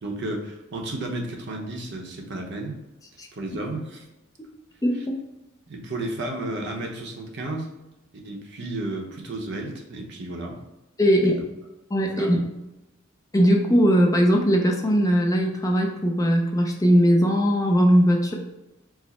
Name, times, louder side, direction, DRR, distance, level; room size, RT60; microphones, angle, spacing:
voice 1, 0.0-2.8 3.3-4.0 4.9-5.1 5.7-7.7 8.2-10.6 11.1-11.2 12.2-12.4, right 2 dB, 55° right, 1 dB, 0.7 m, -32 dB
voice 2, 11.0-11.4 11.9-12.4 13.3-18.3, equal, 15° left, 0 dB, 0.5 m, -19 dB
4.8 x 2.0 x 4.1 m, 0.97 s
head